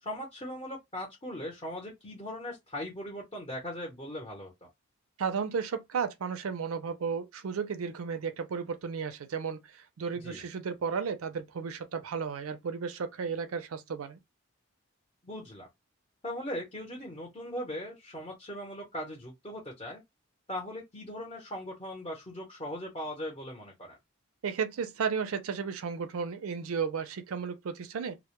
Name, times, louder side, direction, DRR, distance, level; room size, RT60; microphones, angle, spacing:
voice 1, 0.0-4.7 10.1-10.4 15.2-15.7 16.2-20.0 20.5-24.0, left 1 dB, 25° left, 0.7 m, -39 dB
voice 2, 5.2-14.2 24.4-28.2, right 6 dB, 85° right, 0.4 m, -34 dB
2.1 x 2.1 x 2.9 m
head